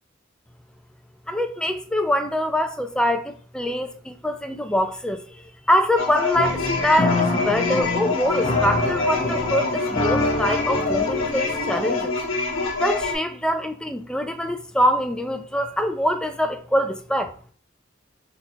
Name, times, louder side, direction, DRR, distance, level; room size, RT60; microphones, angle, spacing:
voice 1, 1.3-5.2 5.7-12.1 12.8-17.3, equal, 5° left, 0.4 m, -24 dB
sound 1, 6.0-13.1, left 3 dB, 90° left, 1.0 m, -25 dB
sound 2, 6.3-12.0, left 2 dB, 35° left, 0.8 m, -27 dB
4.1 x 2.4 x 4.3 m
head